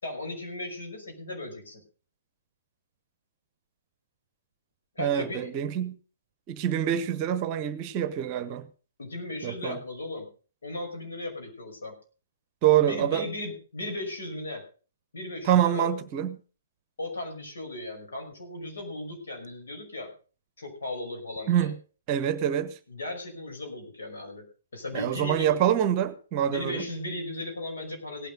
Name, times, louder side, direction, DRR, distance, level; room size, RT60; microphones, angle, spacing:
voice 1, 0.0-1.8 5.0-5.5 9.0-10.3 10.6-11.9 12.8-14.6 15.1-15.9 17.0-20.1 20.6-21.7 22.9-24.4 24.7-25.5 26.5-28.3, left 2 dB, 60° left, 2 dB, 5.7 m, -36 dB
voice 2, 5.0-6.0 6.5-8.6 9.4-9.8 12.6-13.3 15.4-16.4 21.5-21.7 22.1-22.8 24.9-26.8, right 10 dB, 30° right, 15 dB, 1.0 m, -25 dB
17.5 x 9.2 x 5.3 m, 0.39 s
figure-of-eight pair, 120°, 0 cm